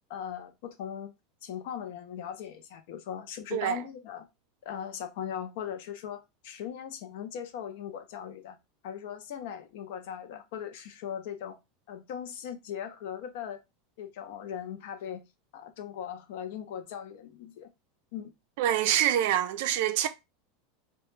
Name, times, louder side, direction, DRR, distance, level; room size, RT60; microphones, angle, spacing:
voice 1, 0.1-1.1 1.4-4.3 4.6-8.6 8.8-11.6 11.9-13.6 14.0-15.2 15.5-17.7 18.1-18.3, left 9 dB, 60° left, 0.4 m, -39 dB
voice 2, 18.6-20.1, right 11 dB, 55° right, 0.3 m, -26 dB
2.1 x 2.1 x 3.0 m
supercardioid pair, 175°, 0 cm